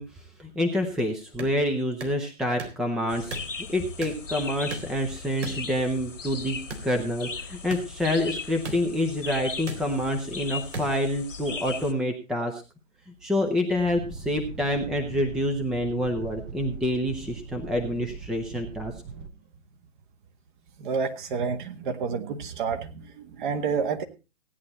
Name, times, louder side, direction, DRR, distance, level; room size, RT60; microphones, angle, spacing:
voice 1, 0.0-3.4 3.7-12.6 13.2-18.9, left 1 dB, ahead, 4 dB, 0.7 m, -27 dB
sound 1, 1.4-1.5 2.0-2.2 2.6-2.8 3.3-3.5 4.0-4.2 4.7-4.9 5.4-5.6 6.7-6.9 7.7-7.8 8.6-8.8 9.7-9.8 10.7-10.9, right 2 dB, 65° right, 3.9 m, -35 dB
sound 2, 3.1-11.9, left 4 dB, 85° left, 1.8 m, -38 dB
sound 3, 13.7-19.3, right 5 dB, 20° right, 1.1 m, -41 dB
voice 2, 20.8-24.0, right 5 dB, 40° right, 8 dB, 1.8 m, -29 dB
16.5 x 9.6 x 4.2 m, 0.30 s
figure-of-eight pair, 135°, 37 cm